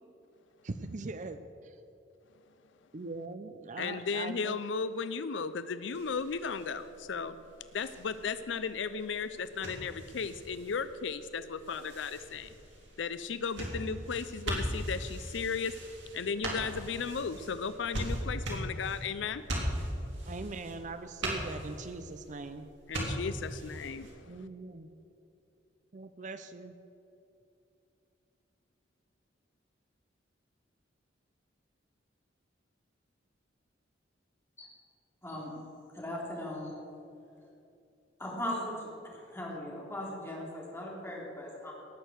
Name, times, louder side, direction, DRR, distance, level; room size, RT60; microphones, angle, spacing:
voice 1, 0.6-1.8 2.9-4.6 20.3-22.7 24.3-24.9 25.9-26.8, right 3 dB, 40° right, 10 dB, 0.5 m, -41 dB
voice 2, 3.8-7.4 7.7-12.5 13.0-15.8 16.1-19.4 22.9-24.4, left 5 dB, 75° left, 13 dB, 0.5 m, -35 dB
sound 1, 5.9-24.1, right 1 dB, 70° right, 3.2 m, -40 dB
voice 3, 35.2-35.5 35.9-36.7 38.2-41.7, left 1 dB, 15° left, -4 dB, 3.2 m, -38 dB
18.0 x 6.6 x 7.9 m, 2.8 s
head